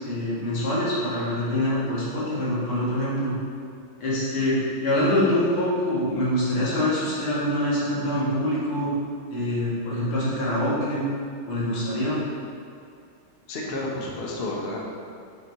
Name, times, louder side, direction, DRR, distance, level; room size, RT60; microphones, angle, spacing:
voice 1, 0.0-3.3 4.0-8.9 9.3-11.0 11.5-12.2, left 1 dB, 80° left, -8 dB, 2.7 m, -25 dB
voice 2, 13.5-14.8, left 2 dB, 45° left, -3 dB, 0.8 m, -31 dB
7.5 x 4.1 x 4.6 m, 2.3 s
omnidirectional pair, 2.3 m